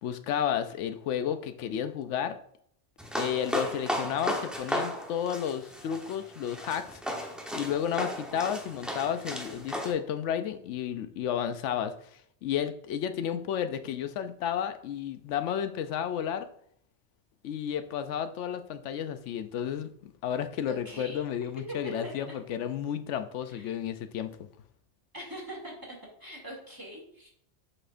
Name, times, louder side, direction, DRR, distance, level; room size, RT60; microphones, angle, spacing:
voice 1, 0.0-2.4 3.2-7.0 7.5-16.5 17.4-24.3, left 9 dB, 85° left, 9 dB, 0.9 m, -32 dB
sound 1, 3.0-9.9, equal, ahead, 0.8 m, -35 dB
voice 2, 20.7-21.2 21.7-22.1 23.5-23.8 25.1-25.7 26.2-27.3, equal, 15° right, -3 dB, 2.3 m, -42 dB
7.7 x 6.3 x 2.5 m, 0.67 s
omnidirectional pair, 1.2 m